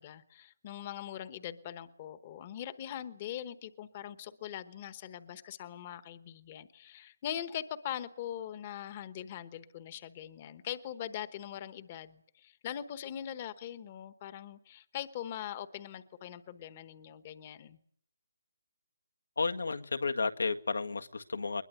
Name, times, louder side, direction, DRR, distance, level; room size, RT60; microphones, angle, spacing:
voice 1, 0.0-17.8, left 10 dB, 20° left, 14 dB, 1.0 m, -42 dB
voice 2, 19.4-21.6, left 4 dB, 90° left, 6 dB, 1.8 m, -32 dB
21.5 x 21.5 x 9.3 m, 0.65 s
hypercardioid pair, 175°, 0 cm